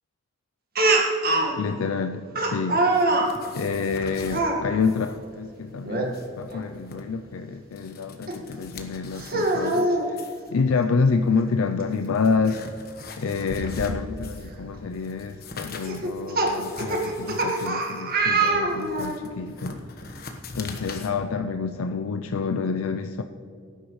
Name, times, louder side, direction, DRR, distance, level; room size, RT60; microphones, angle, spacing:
Speech, 0.8-1.5 2.4-3.3 4.3-4.6 5.8-6.1 6.5-6.6 8.3-8.4 9.2-10.1 11.4-11.5 11.8-11.9 13.8-13.9 14.5-14.8 15.9-19.2, right 2 dB, 45° right, 1.7 m, -23 dB
voice 1, 1.6-2.8 3.5-12.6 13.2-19.8 20.5-23.2, left 5 dB, 85° left, 7 dB, 0.5 m, -28 dB
sound 1, 2.9-4.4 4.8-5.2 5.4-5.5 5.9-7.0 7.5-9.9 10.2-10.5 11.3-11.4 11.9-14.6 14.9-21.1, left 3 dB, 45° left, 1.2 m, -41 dB
18.0 x 10.0 x 3.2 m, 2.4 s
head